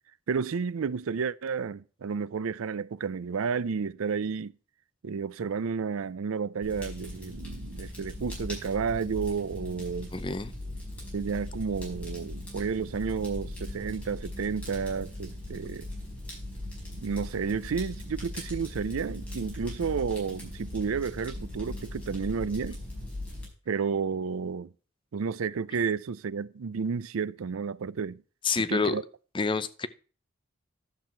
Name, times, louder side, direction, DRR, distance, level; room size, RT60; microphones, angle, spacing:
voice 1, 0.3-4.5 5.0-10.1 11.1-15.9 16.9-22.8 23.7-24.7 25.1-28.2 28.6-29.0, right 5 dB, 80° right, 0.5 m, -31 dB
Fire, 6.6-23.5, left 1 dB, 5° left, 5.1 m, -39 dB
voice 2, 10.1-10.5 28.4-29.0 29.3-29.9, left 4 dB, 25° left, 0.6 m, -28 dB
11.5 x 7.5 x 4.5 m
head